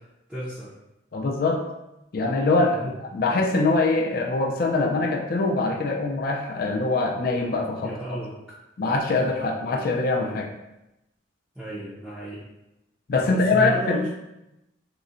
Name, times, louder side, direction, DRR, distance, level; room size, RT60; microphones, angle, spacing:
voice 1, 0.3-0.7 2.6-2.9 7.8-8.3 11.5-12.4 13.2-14.1, right 1 dB, 5° right, -12 dB, 0.5 m, -33 dB
voice 2, 1.1-1.6 2.1-7.9 8.8-10.5 13.1-14.1, left 3 dB, 50° left, 2 dB, 0.3 m, -23 dB
3.7 x 2.1 x 2.5 m, 0.92 s
head